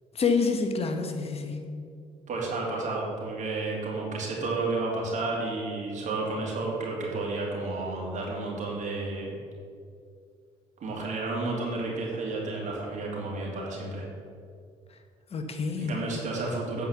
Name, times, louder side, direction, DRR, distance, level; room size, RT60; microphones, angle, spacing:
voice 1, 0.1-1.6 15.3-15.9, left 4 dB, 40° left, 5 dB, 1.3 m, -27 dB
voice 2, 2.3-9.4 10.8-14.1 15.8-16.8, right 3 dB, 55° right, -3 dB, 2.5 m, -31 dB
9.1 x 4.7 x 6.9 m, 2.3 s
supercardioid pair, 65°, 15 cm